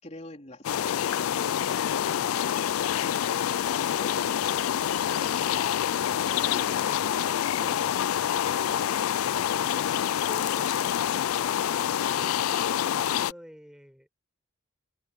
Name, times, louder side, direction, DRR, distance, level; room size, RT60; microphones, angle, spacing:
voice 1, 0.0-2.0 7.6-7.9, left 1 dB, 30° left, 3.9 m, -46 dB
sound 1, 0.6-13.3, left 10 dB, 85° left, 0.4 m, -27 dB
sound 2, 2.8-6.9 7.1-7.4 7.7-7.8 8.2-8.4 8.9-9.2, left 4 dB, 65° left, 3.0 m, -51 dB
voice 2, 3.4-5.6 6.4-7.2 8.8-14.2, equal, 5° right, 5.2 m, -49 dB
head